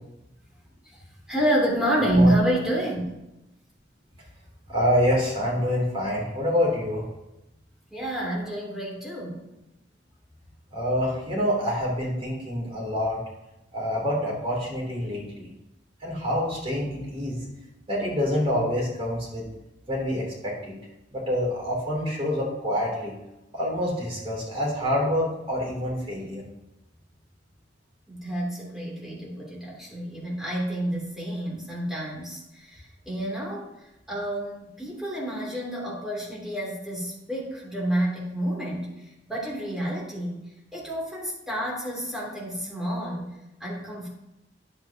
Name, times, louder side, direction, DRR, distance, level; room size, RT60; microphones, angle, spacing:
voice 1, 1.3-3.1 7.9-9.4 28.1-33.7 34.1-40.4 40.7-43.3 43.6-44.1, right 1 dB, 5° right, -5 dB, 2.9 m, -28 dB
voice 2, 4.7-7.1 10.7-13.2 13.7-15.5 16.0-17.4 17.9-19.4 19.9-20.7 21.1-23.1 23.5-26.4, equal, 35° right, -4 dB, 3.0 m, -26 dB
10.0 x 8.1 x 2.9 m, 0.92 s
head